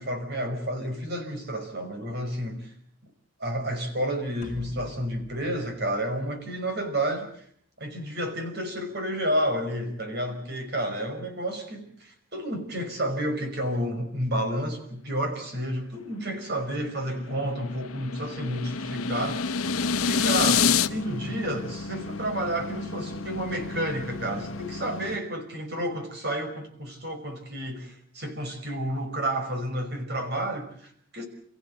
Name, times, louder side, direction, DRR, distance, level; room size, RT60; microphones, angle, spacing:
voice 1, 0.0-2.7 3.4-7.3 7.8-19.5 19.9-31.2, right 1 dB, 50° right, 5 dB, 5.7 m, -30 dB
sound 1, 4.4-6.9, equal, 40° left, 3.2 m, -46 dB
sound 2, 16.6-20.9, left 6 dB, 85° left, 0.9 m, -26 dB
sound 3, 19.6-25.2, left 2 dB, 70° left, 1.3 m, -37 dB
29.5 x 15.5 x 8.2 m, 0.63 s
head